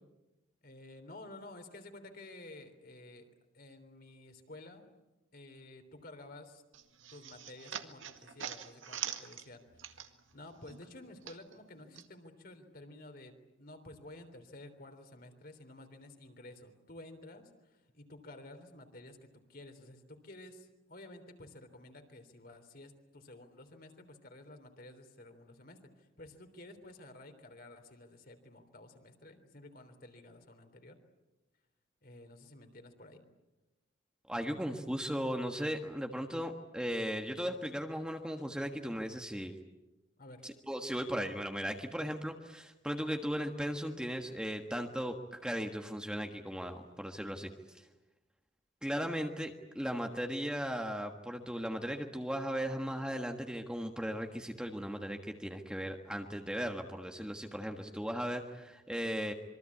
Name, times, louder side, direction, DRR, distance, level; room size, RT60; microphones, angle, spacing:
voice 1, 0.6-4.8 5.3-6.6 7.1-9.6 10.3-31.0 32.0-33.2 40.2-40.4 40.8-41.0, left 2 dB, 50° left, 6 dB, 3.5 m, -52 dB
sound 1, 6.7-10.4 10.7-12.1, right 9 dB, 80° right, 1.9 m, -43 dB
voice 2, 34.3-39.5 40.4-47.8 48.8-59.3, equal, 5° right, 3 dB, 1.5 m, -37 dB
26.5 x 23.5 x 8.5 m, 1.1 s
head